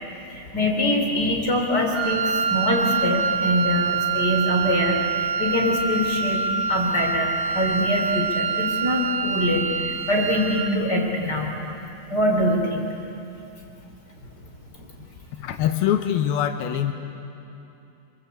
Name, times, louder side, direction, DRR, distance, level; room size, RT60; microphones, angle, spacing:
voice 1, 0.3-6.4 6.7-11.5 12.1-12.9, left 1 dB, 25° left, 1 dB, 3.5 m, -24 dB
Wind instrument woodwind instrument, 1.9-10.8, right 5 dB, 80° right, 4.0 m, -25 dB
voice 2, 15.4-16.9, left 10 dB, 85° left, 7 dB, 2.1 m, -23 dB
27.5 x 22.5 x 8.3 m, 2.9 s
omnidirectional pair, 5.8 m